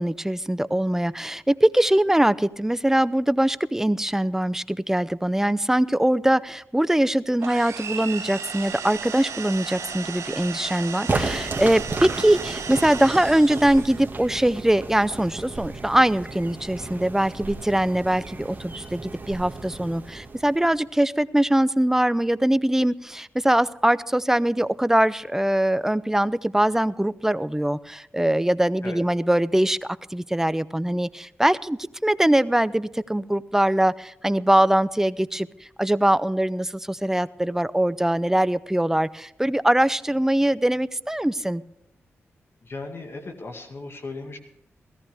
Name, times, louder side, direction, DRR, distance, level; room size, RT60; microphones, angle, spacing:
voice 1, 0.0-35.5 35.8-41.6, right 1 dB, 10° right, 17 dB, 0.5 m, -22 dB
sound 1, 7.4-14.1, right 6 dB, 80° right, 1.4 m, -35 dB
sound 2, 11.1-20.9, right 3 dB, 35° right, 1.8 m, -33 dB
voice 2, 42.6-44.4, left 3 dB, 50° left, 4 dB, 2.0 m, -37 dB
17.5 x 14.0 x 3.5 m, 0.78 s
cardioid pair, 55°, 5 cm